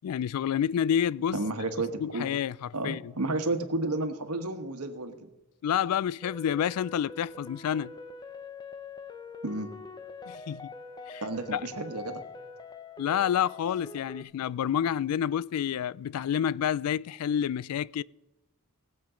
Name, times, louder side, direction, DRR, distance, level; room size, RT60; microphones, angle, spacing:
voice 1, 0.0-1.4 2.0-3.1 5.6-7.9 10.3-10.7 11.1-11.2 11.5-11.7 13.0-18.0, left 9 dB, 80° left, 0.3 m, -29 dB
voice 2, 1.3-2.3 2.7-5.3 9.4-9.7 11.2-12.2, right 2 dB, 85° right, 1.4 m, -32 dB
sound 1, 6.2-14.2, left 3 dB, 20° left, 0.7 m, -44 dB
19.0 x 7.7 x 5.0 m
head